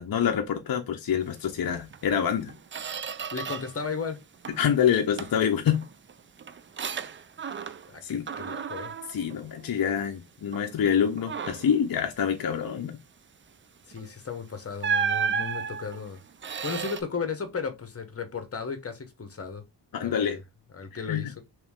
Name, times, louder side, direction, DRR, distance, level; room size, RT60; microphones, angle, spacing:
voice 1, 0.0-2.5 4.6-5.8 8.0-8.2 9.1-13.0 19.9-20.4 21.1-21.3, left 8 dB, 50° left, 0.6 m, -26 dB
Squeak, 1.9-2.1 2.4-3.9 4.2-4.7 5.2-8.0 8.3-10.1 10.5-10.7 11.2-11.8 13.9-14.1 14.8-17.0, right 6 dB, 30° right, 0.3 m, -33 dB
voice 2, 3.3-4.2 7.9-8.9 13.8-16.2 16.6-19.6 20.0-20.4 20.7-21.4, left 5 dB, 30° left, 1.0 m, -35 dB
3.1 x 3.0 x 3.6 m
cardioid pair, 70°, 44 cm